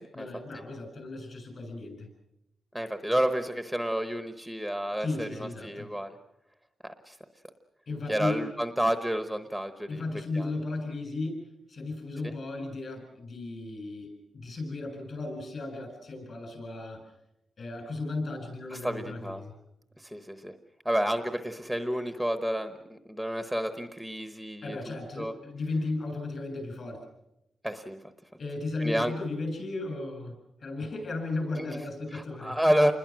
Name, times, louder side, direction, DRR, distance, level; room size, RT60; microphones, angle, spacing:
voice 1, 0.1-2.1 5.0-5.9 7.9-8.5 9.9-17.0 17.6-19.5 24.6-27.0 28.4-30.3 30.6-32.6, left 2 dB, 45° left, 6 dB, 7.8 m, -35 dB
voice 2, 2.7-6.2 6.8-7.2 8.1-10.0 10.3-10.5 12.2-12.3 18.7-19.4 20.0-20.6 20.8-25.3 27.6-28.0 28.8-29.1 31.5-31.8 32.1-32.9, equal, ahead, 8 dB, 1.0 m, -30 dB
28.5 x 21.5 x 6.2 m, 0.87 s
wide cardioid pair, 170°, 0 cm